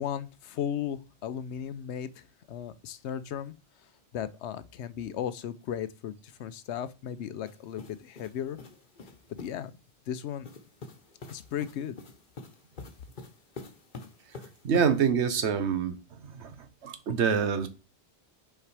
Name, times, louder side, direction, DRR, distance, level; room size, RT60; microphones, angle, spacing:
voice 1, 0.0-3.5 4.1-8.6 9.3-9.7 10.1-10.5 11.3-12.0, left 9 dB, 85° left, 0.9 m, -36 dB
sound 1, 7.5-9.6 10.4-15.1, left 3 dB, 50° left, 1.1 m, -47 dB
voice 2, 14.6-17.7, right 6 dB, 85° right, 1.2 m, -27 dB
5.6 x 4.6 x 4.8 m
omnidirectional pair, 1.1 m